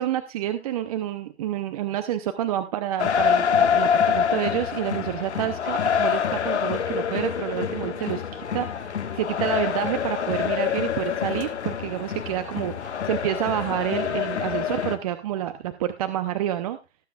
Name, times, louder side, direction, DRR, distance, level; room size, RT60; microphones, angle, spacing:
voice 1, 0.0-16.8, right 11 dB, 35° right, 10 dB, 0.7 m, -29 dB
sound 1, 3.0-15.0, left 8 dB, 85° left, 1.6 m, -26 dB
18.5 x 7.4 x 2.3 m, 0.27 s
hypercardioid pair, 145°, 33 cm